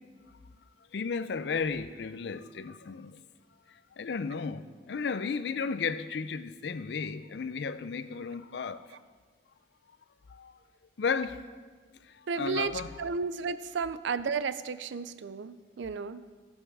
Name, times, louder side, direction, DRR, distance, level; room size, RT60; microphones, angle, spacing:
voice 1, 0.9-3.2 4.0-8.8 10.3-10.5 11.0-11.4 12.4-12.9, left 5 dB, 60° left, 0.4 m, -33 dB
voice 2, 12.3-16.3, right 5 dB, 70° right, 0.4 m, -33 dB
15.0 x 5.5 x 4.8 m
head